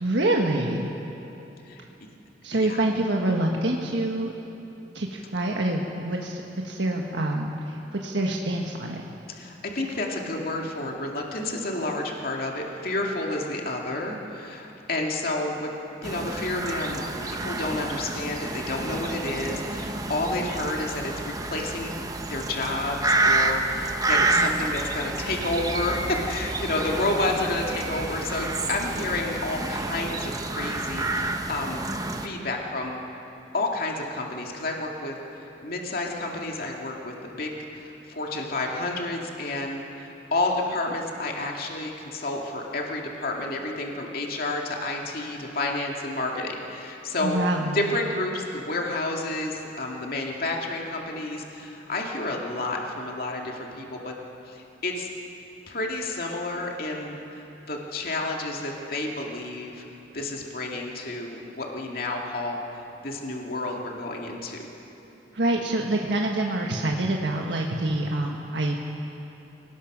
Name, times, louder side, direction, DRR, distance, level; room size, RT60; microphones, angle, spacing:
voice 1, 0.0-0.9 2.4-4.3 4.9-9.0 47.2-47.8 65.3-68.8, right 1 dB, 80° right, 0 dB, 1.5 m, -26 dB
voice 2, 9.3-15.7 16.0-22.0 22.3-31.9 32.2-33.0 33.5-47.4 47.7-54.1 54.5-55.1 55.7-59.8 60.1-62.6 63.0-64.7, left 2 dB, 55° left, 0 dB, 2.4 m, -30 dB
sound 1, 16.0-32.3, right 2 dB, 20° right, 1.1 m, -29 dB
27.0 x 18.5 x 6.2 m, 3.0 s
head